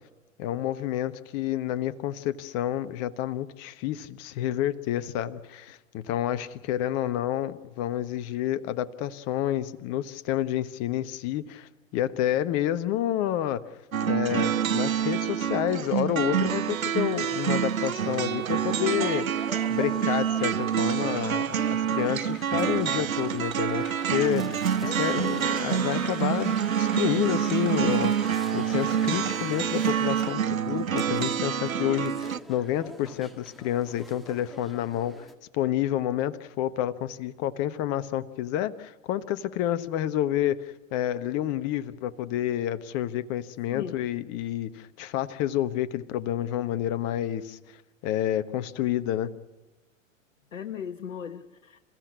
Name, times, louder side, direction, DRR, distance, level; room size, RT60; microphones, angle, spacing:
voice 1, 0.4-13.7 14.0-35.3 35.5-47.6 48.0-49.3, left 12 dB, 35° left, 13 dB, 1.3 m, -29 dB
sound 1, 13.9-32.4, right 8 dB, 85° right, 0.7 m, -27 dB
sound 2, 16.7-35.3, equal, ahead, 1.9 m, -45 dB
voice 2, 24.8-25.4 43.7-44.0 50.5-51.8, left 8 dB, 70° left, 7 dB, 1.2 m, -37 dB
28.5 x 15.5 x 9.6 m, 1.1 s
figure-of-eight pair, 100°, 40 cm